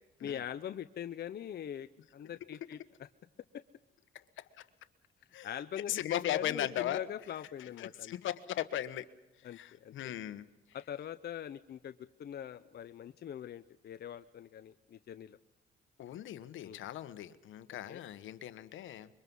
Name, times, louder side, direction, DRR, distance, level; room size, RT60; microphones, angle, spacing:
voice 1, 0.2-2.8 3.5-3.6 5.4-8.1 9.4-10.1 10.7-11.9 12.2-15.4 16.6-16.8 17.9-18.0, left 9 dB, 55° left, 10 dB, 0.8 m, -42 dB
voice 2, 5.9-7.0 7.6-9.0 9.4-10.4 16.0-19.1, left 12 dB, 80° left, 13 dB, 1.3 m, -38 dB
25.5 x 23.0 x 5.5 m, 1.0 s
cardioid pair, 90°, 20 cm